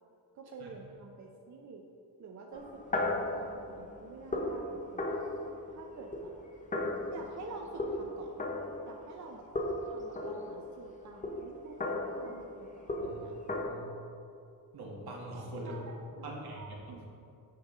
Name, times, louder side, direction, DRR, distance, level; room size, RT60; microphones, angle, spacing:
voice 1, 0.3-1.9 2.2-5.2 5.7-6.3 7.1-8.4 8.9-9.4 9.8-13.4 15.6-15.8 16.2-17.1, right 3 dB, 50° right, 1 dB, 0.6 m, -48 dB
sound 1, 2.5-9.3 9.6-13.6, left 2 dB, 20° left, 0.7 m, -36 dB
voice 2, 13.5-13.9 14.7-15.8 16.2-16.7, right 1 dB, 75° right, -2 dB, 1.6 m, -43 dB
9.6 x 5.1 x 3.7 m, 2.6 s
wide cardioid pair, 155°, 38 cm